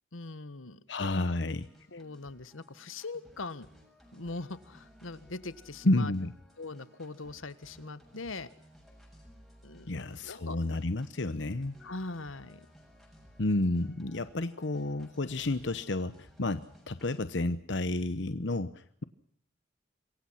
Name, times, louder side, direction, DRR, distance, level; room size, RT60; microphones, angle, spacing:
voice 1, 0.1-0.8 1.2-1.3 1.9-3.7 4.1-6.1 6.6-8.5 9.6-10.6 11.8-12.7, left 3 dB, 85° left, 14 dB, 1.5 m, -41 dB
voice 2, 0.9-2.0 5.8-6.3 9.9-11.8 13.4-19.0, left 2 dB, 65° left, 12 dB, 1.0 m, -31 dB
sound 1, 1.2-17.2, equal, ahead, 7.0 m, -58 dB
27.0 x 23.0 x 5.8 m, 0.62 s
head